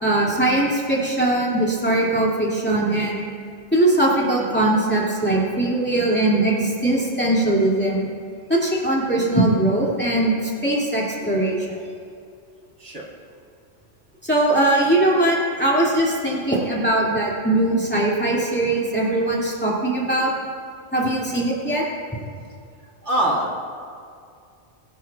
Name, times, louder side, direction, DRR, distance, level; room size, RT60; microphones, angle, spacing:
voice 1, 0.0-3.2 3.7-8.0 8.5-10.3 10.6-11.6 14.2-20.3 20.9-21.8, right 1 dB, 10° left, -5 dB, 2.3 m, -20 dB
voice 2, 23.0-23.6, right 1 dB, 70° right, -3 dB, 2.3 m, -23 dB
22.0 x 11.0 x 2.4 m, 2.3 s
omnidirectional pair, 1.2 m